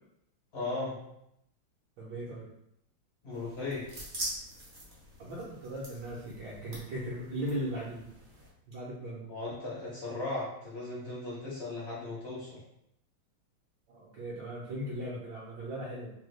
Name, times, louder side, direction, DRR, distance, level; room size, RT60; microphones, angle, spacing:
voice 1, 0.5-1.0 3.2-3.8 9.3-12.6, left 2 dB, 65° left, -6 dB, 0.6 m, -37 dB
voice 2, 2.0-2.5 5.2-8.1 8.7-9.3 13.9-16.1, right 1 dB, 70° right, -7 dB, 1.3 m, -38 dB
sound 1, 3.3-8.5, right 1 dB, 90° right, 0.4 m, -44 dB
3.4 x 2.3 x 3.1 m, 0.79 s
omnidirectional pair, 2.2 m